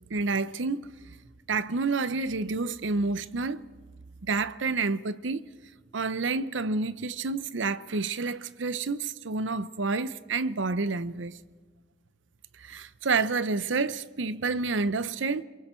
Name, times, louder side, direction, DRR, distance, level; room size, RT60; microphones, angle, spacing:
voice 1, 0.1-0.9 1.5-3.6 4.2-5.5 5.9-11.4 12.6-15.4, right 4 dB, 75° right, 0.7 m, -29 dB
28.0 x 23.0 x 4.4 m
head